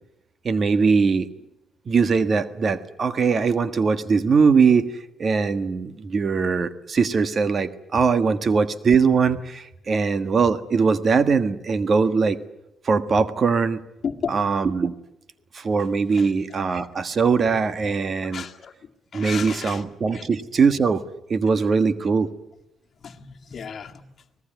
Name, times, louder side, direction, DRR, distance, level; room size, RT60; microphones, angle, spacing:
voice 1, 0.4-1.3 1.9-4.9 5.2-12.4 12.8-13.8 14.3-14.9 15.5-18.4 19.1-21.0 21.3-22.3, right 5 dB, 45° right, 1.5 m, -21 dB
voice 2, 14.0-14.4 16.1-16.3 18.3-18.7 19.1-19.8 20.1-20.3 23.0-24.0, left 7 dB, 50° left, 1.9 m, -33 dB
24.0 x 19.5 x 9.3 m
cardioid pair, 90°, 0 cm